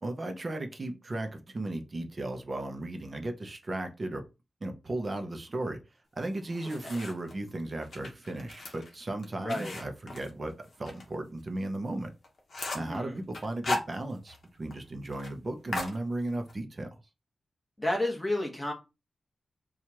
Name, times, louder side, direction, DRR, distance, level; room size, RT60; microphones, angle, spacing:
voice 1, 0.0-4.2 4.6-5.8 6.1-12.1 12.7-17.0, right 2 dB, 30° right, 6 dB, 0.6 m, -35 dB
sound 1, 6.2-7.3 7.8-11.0 11.4-11.5 11.9-12.0 12.2-13.0 13.3-14.4 14.7-14.8 15.1-15.3 15.7-16.6, left 2 dB, 55° left, 0.9 m, -37 dB
voice 2, 9.4-9.7 12.8-13.2 17.8-18.7, left 1 dB, 10° left, 0 dB, 1.0 m, -31 dB
4.5 x 2.3 x 2.9 m, 0.27 s
wide cardioid pair, 175°, 0 cm